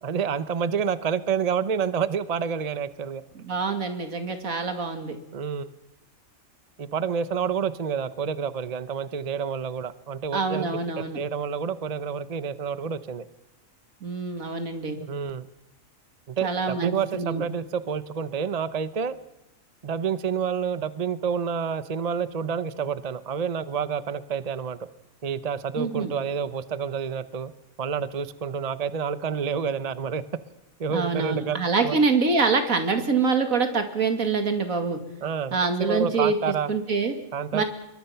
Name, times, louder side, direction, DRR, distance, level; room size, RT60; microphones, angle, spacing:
voice 1, 0.0-3.2 5.3-5.7 6.8-10.7 11.0-13.2 15.0-15.5 16.3-19.2 19.8-24.8 25.2-27.5 27.8-30.2 30.8-31.6 31.8-32.0 35.2-35.6 35.9-36.7 37.3-37.6, right 6 dB, 35° right, 13 dB, 0.8 m, -28 dB
voice 2, 3.4-5.2 10.3-11.2 14.0-15.0 16.4-17.4 25.8-26.1 30.9-35.0 35.5-36.4 36.7-37.1 37.5-37.6, right 4 dB, 80° right, 6 dB, 2.7 m, -25 dB
26.5 x 23.0 x 5.8 m, 0.94 s
omnidirectional pair, 1.4 m